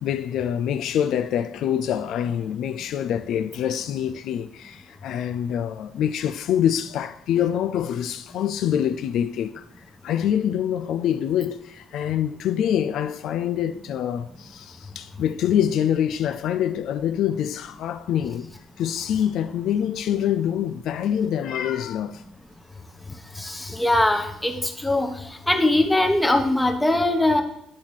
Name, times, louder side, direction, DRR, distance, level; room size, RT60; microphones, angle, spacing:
voice 1, 0.0-9.7 10.0-18.5 18.8-22.2, left 9 dB, 70° left, 0.4 m, -25 dB
voice 2, 23.4-24.6 24.8-25.1 25.5-27.4, left 1 dB, 5° left, 1.0 m, -21 dB
10.5 x 4.1 x 6.2 m
cardioid pair, 130°, 0 cm